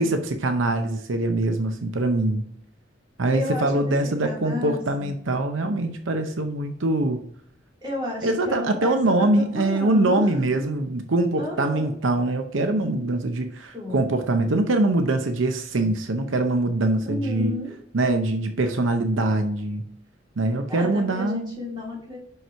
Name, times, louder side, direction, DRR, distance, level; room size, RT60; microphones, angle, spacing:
voice 1, 0.0-2.5 3.2-7.2 8.2-17.5 17.9-19.8 20.4-21.5, right 2 dB, 85° right, 6 dB, 0.7 m, -23 dB
voice 2, 3.3-5.2 7.8-10.7 11.4-11.9 13.0-13.1 13.7-14.0 17.1-17.8 20.7-22.2, left 2 dB, 25° right, -4 dB, 2.7 m, -32 dB
5.9 x 5.4 x 4.5 m, 0.64 s
head